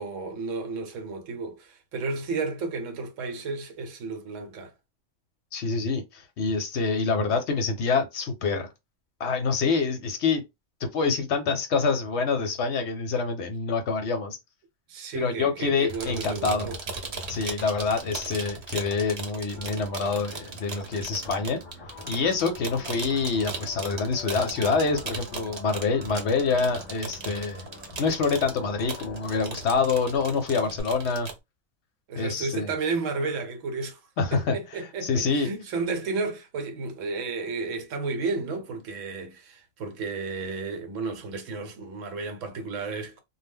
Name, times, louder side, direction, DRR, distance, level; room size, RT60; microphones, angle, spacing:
voice 1, 0.0-4.7 14.9-16.8 17.2-17.5 32.1-34.0 34.3-43.2, right 4 dB, 75° right, 1.0 m, -32 dB
voice 2, 5.5-8.7 9.2-10.4 10.9-14.4 15.1-16.7 17.3-21.6 22.1-27.7 28.0-31.3 32.2-32.7 34.2-34.6 35.0-35.5, left 4 dB, 65° left, 0.8 m, -26 dB
sound 1, 15.9-31.4, right 4 dB, 60° right, 0.4 m, -38 dB
sound 2, 19.5-30.8, left 2 dB, 30° left, 0.8 m, -45 dB
2.2 x 2.1 x 3.4 m
omnidirectional pair, 1.4 m